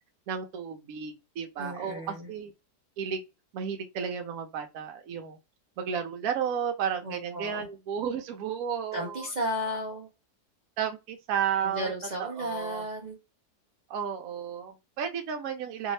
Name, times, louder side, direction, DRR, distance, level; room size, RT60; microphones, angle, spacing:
voice 1, 0.3-2.5 3.0-3.2 3.5-5.4 5.8-9.3 10.8-11.9 12.2-12.8 13.9-15.9, right 7 dB, 70° right, 1.0 m, -33 dB
voice 2, 1.6-2.3 7.0-7.7 8.9-10.1 11.6-13.2, equal, 40° right, 0.6 m, -34 dB
2.7 x 2.7 x 3.1 m
omnidirectional pair, 1.7 m